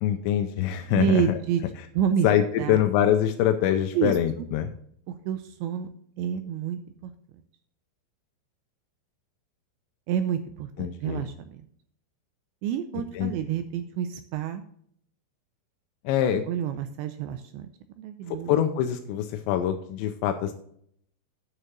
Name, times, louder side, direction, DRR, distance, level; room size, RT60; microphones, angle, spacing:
voice 1, 0.0-1.4 2.2-4.7 10.8-11.3 13.1-13.3 16.1-16.5 18.5-20.5, left 10 dB, 85° left, 6 dB, 2.7 m, -24 dB
voice 2, 0.9-1.6 2.0-2.3 2.6-2.8 3.9-4.2 5.3-5.9 6.2-7.1 10.1-11.6 12.6-14.6 16.5-17.7 18.0-18.5, right 9 dB, 85° right, 9 dB, 2.6 m, -28 dB
9.2 x 6.5 x 6.1 m, 0.65 s
omnidirectional pair, 5.6 m